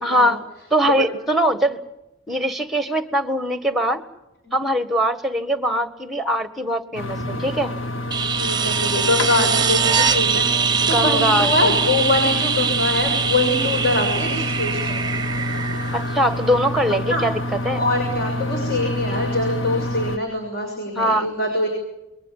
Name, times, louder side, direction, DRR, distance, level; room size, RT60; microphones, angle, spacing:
voice 1, 0.0-0.4 0.7-1.8 2.3-4.0 4.5-7.7 10.9-11.8 15.9-17.3 17.6-17.8 21.0-21.3, equal, ahead, 10 dB, 1.5 m, -21 dB
sound 1, 6.9-20.2, left 1 dB, 65° left, 1.5 m, -28 dB
sound 2, 8.1-16.8 19.1-19.2, right 6 dB, 20° right, 0.9 m, -23 dB
voice 2, 8.4-15.1 17.1-17.2 17.7-21.7, left 2 dB, 50° left, 1 dB, 6.5 m, -23 dB
28.0 x 22.5 x 7.3 m, 0.96 s
head